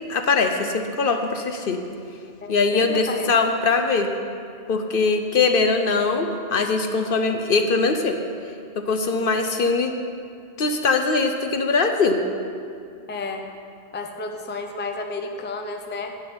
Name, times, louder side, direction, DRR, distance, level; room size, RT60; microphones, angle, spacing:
voice 1, 0.1-1.8 2.5-4.1 4.7-8.2 8.9-9.9 10.6-12.2, left 4 dB, 55° left, 6 dB, 0.8 m, -21 dB
voice 2, 2.4-3.3 13.1-13.4 13.9-16.1, left 3 dB, 15° left, 4 dB, 0.5 m, -32 dB
9.6 x 6.1 x 8.7 m, 2.4 s
omnidirectional pair, 1.2 m